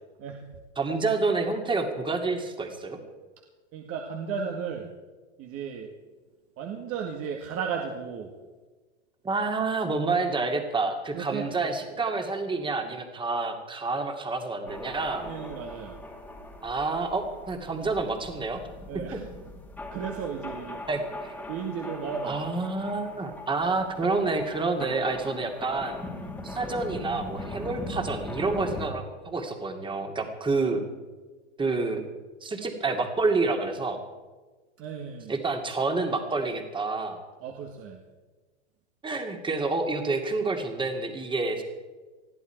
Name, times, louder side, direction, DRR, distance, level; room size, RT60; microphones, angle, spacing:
voice 1, 0.2-0.6 3.7-4.9 5.4-5.9 6.6-8.3 11.1-12.0 15.2-15.9 18.9-19.2 19.9-20.8 21.5-22.4 30.2-30.3 34.8-35.3 37.4-38.0, right 6 dB, 40° right, 2 dB, 2.1 m, -35 dB
voice 2, 0.8-3.0 9.2-15.3 16.6-18.6 19.1-19.2 20.9-21.3 22.2-26.0 26.4-30.8 31.6-32.0 32.4-34.0 35.3-37.2 39.0-41.6, right 3 dB, 15° right, 4 dB, 2.4 m, -28 dB
sound 1, 14.7-28.9, left 1 dB, 5° left, 2.2 m, -40 dB
21.0 x 14.0 x 4.7 m, 1.3 s
hypercardioid pair, 120°, 35 cm